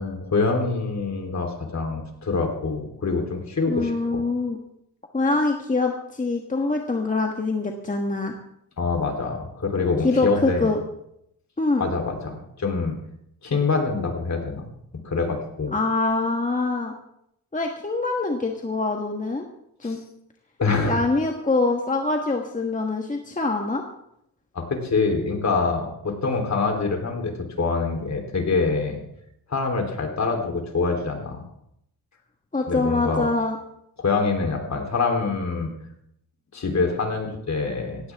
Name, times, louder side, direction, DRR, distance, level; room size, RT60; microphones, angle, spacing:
voice 1, 0.0-4.2 8.8-10.7 11.8-12.9 13.4-14.7 15.0-15.7 19.8-20.0 20.6-21.0 24.5-29.0 29.5-31.4 32.7-33.3 34.0-35.7 36.5-38.1, left 4 dB, 45° left, 3 dB, 3.6 m, -25 dB
voice 2, 3.7-4.6 5.1-8.3 10.0-10.8 11.6-11.8 15.7-16.9 17.5-19.5 19.8-20.0 20.9-23.8 32.5-33.6, left 3 dB, 20° left, 2 dB, 1.5 m, -24 dB
17.0 x 16.5 x 3.6 m, 0.76 s
cardioid pair, 95°, 39 cm